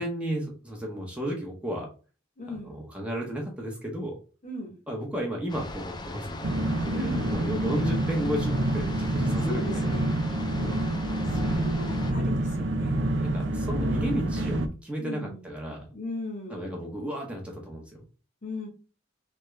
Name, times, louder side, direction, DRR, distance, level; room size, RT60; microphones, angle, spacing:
voice 1, 0.0-1.9 2.6-4.2 4.9-7.1 7.3-10.0 13.2-15.8 16.5-18.0, right 1 dB, 5° right, -1 dB, 0.9 m, -33 dB
voice 2, 2.4-2.7 4.4-4.8 6.9-7.4 9.4-10.2 10.6-13.0 15.0-15.5 15.9-16.7 18.4-18.7, left 2 dB, 40° left, 2 dB, 1.0 m, -38 dB
sound 1, 5.5-12.1, left 2 dB, 20° left, 0.4 m, -38 dB
sound 2, 6.4-14.7, right 1 dB, 65° right, 0.5 m, -27 dB
3.5 x 2.9 x 3.2 m, 0.36 s
head